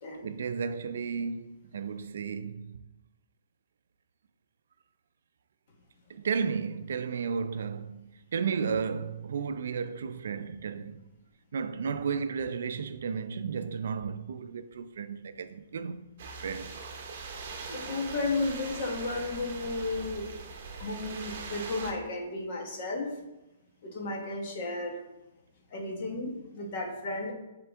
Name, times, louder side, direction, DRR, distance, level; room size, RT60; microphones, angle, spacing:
voice 1, 0.2-2.8 6.1-11.0 11.5-16.1 16.4-16.8, right 6 dB, 65° right, 0.4 m, -33 dB
sound 1, 16.2-21.9, right 4 dB, 45° right, 0.9 m, -41 dB
voice 2, 17.7-20.3 20.8-23.1 23.8-25.0 25.7-27.3, left 2 dB, 35° left, 1.2 m, -33 dB
7.6 x 3.8 x 3.6 m
hypercardioid pair, 170°, 0 cm